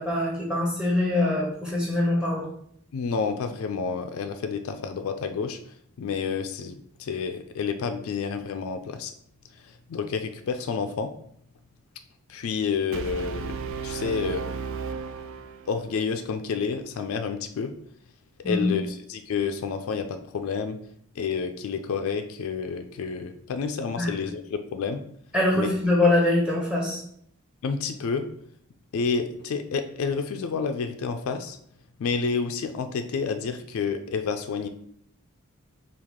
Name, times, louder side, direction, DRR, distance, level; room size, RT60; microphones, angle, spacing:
voice 1, 0.0-2.5 18.4-18.7 24.0-24.1 25.3-27.0, left 1 dB, 5° right, -2 dB, 1.0 m, -23 dB
voice 2, 2.9-5.6 6.0-9.1 9.6-11.1 12.3-13.6 13.8-14.4 15.7-17.7 18.4-20.8 21.2-25.0 25.5-25.7 27.6-28.3 28.9-31.6 32.0-34.7, left 5 dB, 75° left, 7 dB, 0.3 m, -29 dB
Brass instrument, 12.9-16.0, right 5 dB, 65° right, 0.3 m, -34 dB
4.7 x 2.4 x 3.6 m, 0.67 s
head